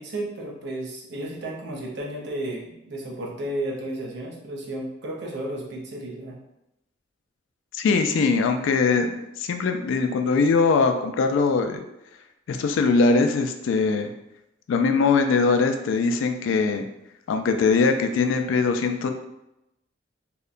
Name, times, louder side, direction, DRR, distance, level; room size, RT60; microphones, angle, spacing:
voice 1, 0.0-6.4, right 1 dB, 60° right, -2 dB, 0.6 m, -33 dB
voice 2, 7.7-11.8 12.5-14.1 14.7-16.9 17.3-19.1, left 4 dB, 90° left, 8 dB, 0.3 m, -21 dB
2.8 x 2.1 x 2.4 m, 0.87 s
head